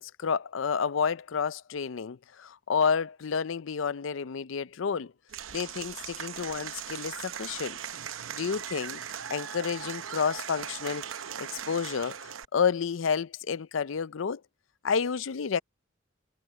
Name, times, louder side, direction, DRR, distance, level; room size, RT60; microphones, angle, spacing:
voice 1, 0.0-5.1 5.5-7.8 8.3-9.0 9.3-11.1 11.4-14.4 14.8-15.6, left 6 dB, 75° left, 0.5 m, -30 dB
Applause / Crowd, 5.3-12.4, right 9 dB, 85° right, 0.8 m, -39 dB
head